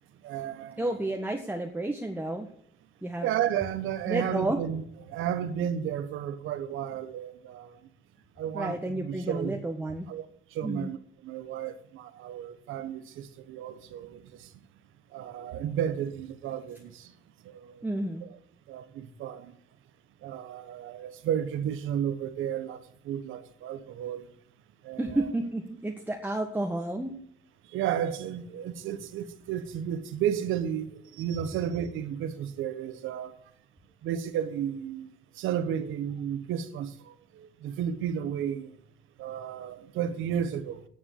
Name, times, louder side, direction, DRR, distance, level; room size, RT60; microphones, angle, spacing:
voice 1, 0.2-1.1 3.2-7.9 8.4-14.5 15.1-17.1 17.4-17.8 18.2-18.3 18.7-19.5 20.2-24.3 24.8-25.3 27.6-33.4 34.0-38.8 39.2-40.9, right 9 dB, 90° right, 1.3 m, -33 dB
voice 2, 0.8-2.5 3.0-3.3 4.1-4.6 8.5-10.1 10.6-10.9 17.8-18.2 25.0-27.1, right 1 dB, 10° right, 1.6 m, -31 dB
9.9 x 7.3 x 8.6 m
cardioid pair, 90°, 20 cm